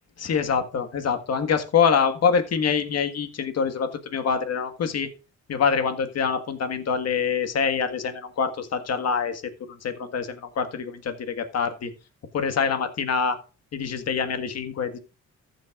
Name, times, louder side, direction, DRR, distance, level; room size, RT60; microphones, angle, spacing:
voice 1, 0.2-5.1 5.5-9.4 9.7-11.9 12.3-13.4 13.7-15.0, left 6 dB, 55° left, 8 dB, 1.7 m, -25 dB
14.5 x 7.5 x 2.5 m, 0.33 s
cardioid pair, 90°, 30 cm